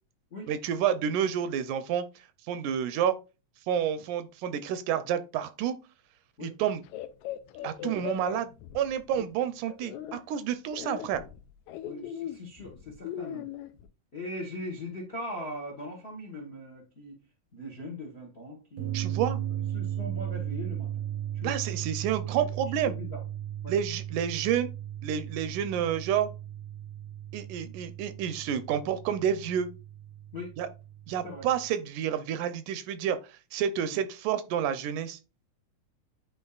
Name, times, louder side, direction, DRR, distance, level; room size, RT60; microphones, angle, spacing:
voice 1, 0.5-2.1 2.5-3.2 3.7-5.7 6.4-6.8 7.6-11.2 18.9-19.4 21.4-23.0 23.7-24.7 25.0-26.3 27.3-29.7 30.6-30.7 31.1-35.2, right 9 dB, 85° right, 2.1 m, -29 dB
sound 1, 6.9-9.2 9.7-10.2 10.7-13.9, left 11 dB, 80° left, 1.9 m, -39 dB
voice 2, 7.8-8.2 9.1-9.2 11.8-13.5 14.1-17.2 17.5-19.1 19.7-21.0 21.3-21.6 22.8-23.2 23.6-23.7 27.6-27.7 30.3-30.6 31.2-31.5 33.9-34.0, left 1 dB, 50° left, 0.7 m, -40 dB
sound 2, 18.8-31.7, right 11 dB, 65° right, 0.7 m, -36 dB
9.9 x 4.0 x 2.4 m
omnidirectional pair, 3.5 m